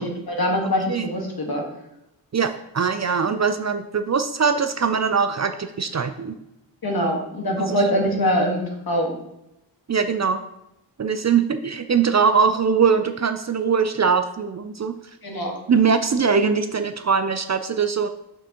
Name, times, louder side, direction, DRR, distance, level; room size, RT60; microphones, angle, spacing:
voice 1, 0.0-1.6 6.8-9.2 15.2-15.6, equal, 55° left, 1 dB, 1.7 m, -23 dB
voice 2, 2.3-6.4 7.6-7.9 9.9-10.4 11.0-15.0 15.7-18.1, right 6 dB, 40° right, 9 dB, 0.5 m, -21 dB
6.2 x 6.0 x 3.0 m, 0.87 s
cardioid pair, 40°, 44 cm